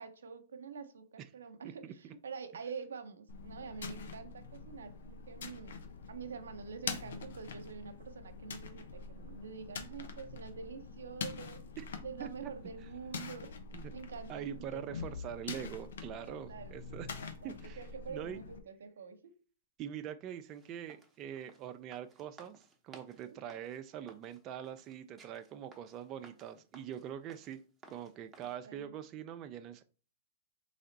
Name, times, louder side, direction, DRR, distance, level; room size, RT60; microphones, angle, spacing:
voice 1, 0.0-5.8 6.1-11.6 12.0-13.6 13.9-15.2 16.3-16.8 17.1-19.3 23.2-23.4 28.4-29.0, right 6 dB, 85° right, 9 dB, 0.7 m, -46 dB
sound 1, 3.3-18.6, left 5 dB, 75° left, 0.8 m, -45 dB
voice 2, 14.3-17.1 17.4-17.8 18.1-18.4 19.8-27.6 27.9-29.8, right 10 dB, 30° right, 8 dB, 0.4 m, -43 dB
sound 2, 20.5-28.6, right 4 dB, 15° right, 0.9 m, -59 dB
4.1 x 3.3 x 3.9 m, 0.38 s
hypercardioid pair, 130°, 0 cm